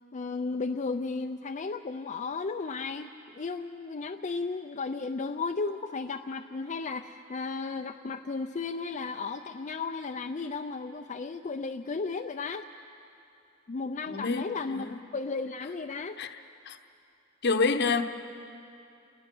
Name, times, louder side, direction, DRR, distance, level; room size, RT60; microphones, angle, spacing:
voice 1, 0.1-12.7 13.7-14.9 15.1-16.2, left 4 dB, 35° left, 5 dB, 0.5 m, -34 dB
voice 2, 14.1-14.4 14.7-15.0 16.2-16.3 16.7-16.8 17.4-18.0, left 4 dB, 55° left, 8 dB, 1.0 m, -27 dB
28.5 x 20.0 x 6.1 m, 2.7 s
head